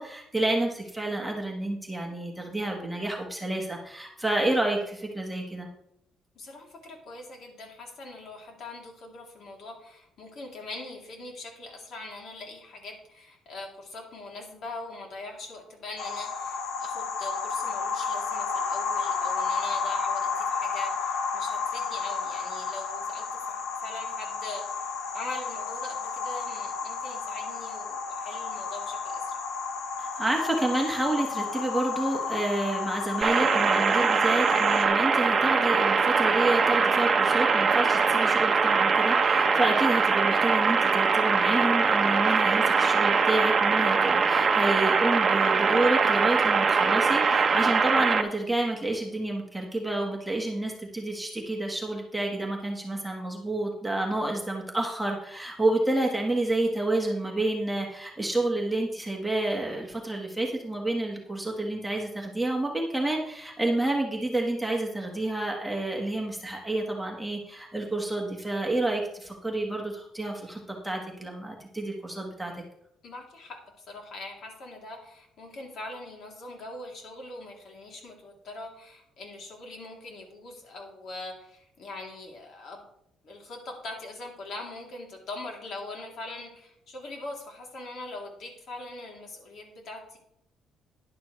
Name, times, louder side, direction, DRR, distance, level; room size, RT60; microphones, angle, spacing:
voice 1, 0.0-5.7 30.0-72.5, right 2 dB, 5° right, 0 dB, 1.4 m, -29 dB
voice 2, 6.3-29.4 73.0-82.9 83.2-90.2, left 2 dB, 55° left, 0 dB, 3.0 m, -42 dB
sound 1, 16.0-34.8, left 5 dB, 85° left, 1.1 m, -32 dB
sound 2, 33.2-48.2, right 5 dB, 30° right, 1.0 m, -22 dB
11.5 x 11.0 x 3.2 m, 0.77 s
cardioid pair, 135°, 0 cm